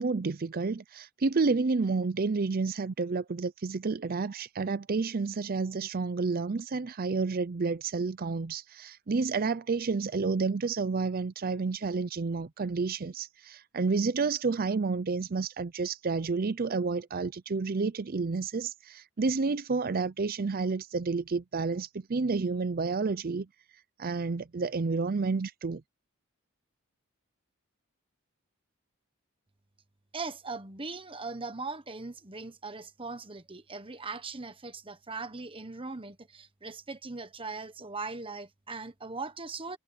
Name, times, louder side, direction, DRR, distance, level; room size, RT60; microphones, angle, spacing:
voice 1, 0.0-23.5 24.0-25.8, right 4 dB, 45° right, 0.5 m, -30 dB
voice 2, 30.1-39.8, right 3 dB, 25° right, 1.3 m, -40 dB
head